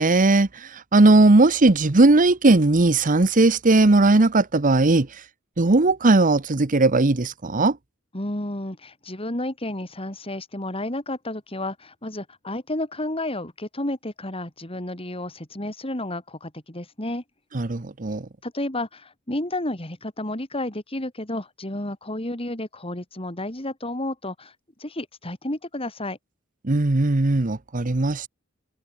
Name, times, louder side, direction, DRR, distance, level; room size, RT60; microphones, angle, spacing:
voice 1, 0.0-5.1 5.6-7.8 17.5-18.3 26.6-28.3, right 2 dB, 40° right, 0.9 m, -18 dB
voice 2, 8.1-17.2 18.4-24.5 24.8-26.2, left 1 dB, 25° left, 4.0 m, -31 dB
open air
head